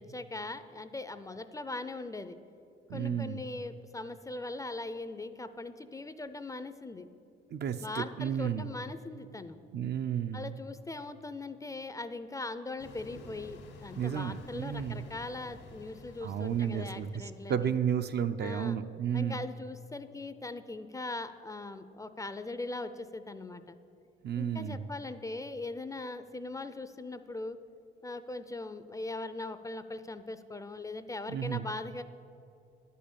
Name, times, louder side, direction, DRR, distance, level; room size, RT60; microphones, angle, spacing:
voice 1, 0.0-2.4 2.9-7.1 7.8-9.6 10.3-17.7 18.4-18.8 19.1-23.8 24.4-27.6 28.0-32.0, left 2 dB, 15° left, 11 dB, 0.5 m, -40 dB
voice 2, 2.9-3.4 7.5-8.7 9.7-10.5 14.0-15.0 16.2-19.4 24.2-24.9 31.3-31.7, right 8 dB, 55° right, 9 dB, 0.6 m, -32 dB
sound 1, 12.8-17.8, left 3 dB, 85° left, 1.8 m, -50 dB
10.5 x 5.5 x 8.5 m, 2.6 s
cardioid pair, 90°, 20 cm